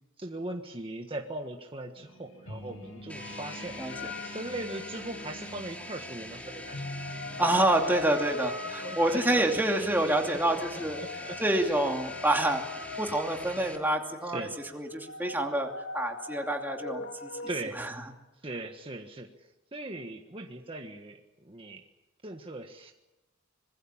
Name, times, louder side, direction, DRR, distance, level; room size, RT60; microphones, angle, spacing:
voice 1, 0.2-6.8 8.8-11.7 14.2-14.5 17.5-17.8 18.4-21.8 22.2-22.9, right 2 dB, 25° right, 3 dB, 1.6 m, -40 dB
sound 1, 2.0-7.5, left 1 dB, 90° left, 5.9 m, -45 dB
sound 2, 3.1-13.8, left 1 dB, 5° left, 3.1 m, -43 dB
sound 3, 3.9-5.5 6.4-17.6, left 4 dB, 70° left, 2.5 m, -41 dB
voice 2, 7.4-11.0 11.4-12.6 13.0-14.5 14.7-15.7 15.9-17.3 17.8-17.9, right 1 dB, 10° right, 2 dB, 2.7 m, -27 dB
25.5 x 21.5 x 7.4 m, 1.0 s
head